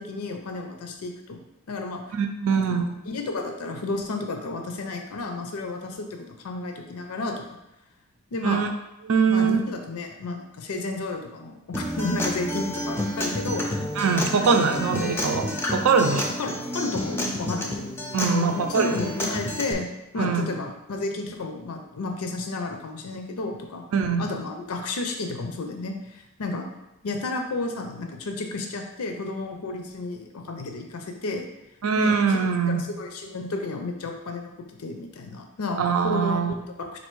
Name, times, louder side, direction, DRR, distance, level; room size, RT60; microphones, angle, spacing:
voice 1, 0.0-1.4 1.7-2.0 2.5-2.8 3.1-7.4 8.3-8.7 9.3-13.7 14.3-14.5 16.1-19.9 20.1-23.8 24.2-26.7 27.0-31.5 31.9-32.4 32.7-34.5 34.8-37.0, left 3 dB, 85° left, 4 dB, 0.5 m, -32 dB
voice 2, 2.1-2.9 8.4-8.7 9.1-9.6 14.0-15.4 15.7-16.2 18.1-19.1 20.2-20.5 23.9-24.3 31.8-32.8 35.8-36.5, right 5 dB, 75° right, 5 dB, 0.5 m, -22 dB
Acoustic guitar, 11.7-19.7, left 1 dB, 10° left, 0.4 m, -30 dB
4.3 x 2.6 x 4.5 m, 0.91 s
head